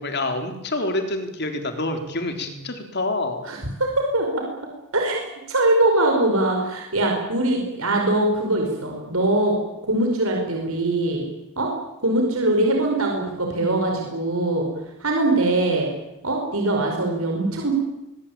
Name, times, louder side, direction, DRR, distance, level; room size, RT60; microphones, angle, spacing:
voice 1, 0.0-3.5, left 2 dB, 50° left, 6 dB, 3.8 m, -27 dB
voice 2, 3.5-4.4 4.9-11.3 11.6-11.7 12.0-14.7 15.0-15.9 16.2-17.7, right 2 dB, 70° right, 1 dB, 5.3 m, -22 dB
23.0 x 21.5 x 9.0 m, 0.94 s
head